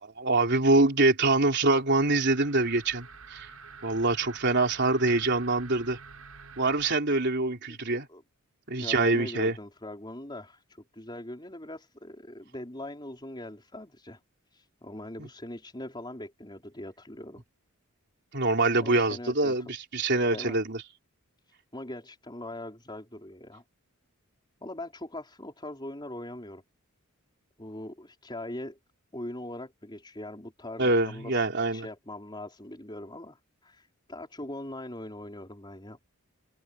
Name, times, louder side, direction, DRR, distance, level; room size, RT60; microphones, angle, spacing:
voice 1, 0.2-3.5 3.8-6.0 6.6-8.1 8.7-9.5 15.2-15.3 18.3-19.7 19.9-20.8 30.8-31.8, right 2 dB, 50° right, 3.9 m, -25 dB
sound 1, 1.9-6.9, right 5 dB, 80° right, 6.6 m, -48 dB
voice 2, 8.8-14.2 14.5-17.4 18.8-19.7 20.3-20.6 21.5-23.6 24.6-26.6 27.6-28.8 29.1-36.0, left 1 dB, 20° left, 4.9 m, -41 dB
head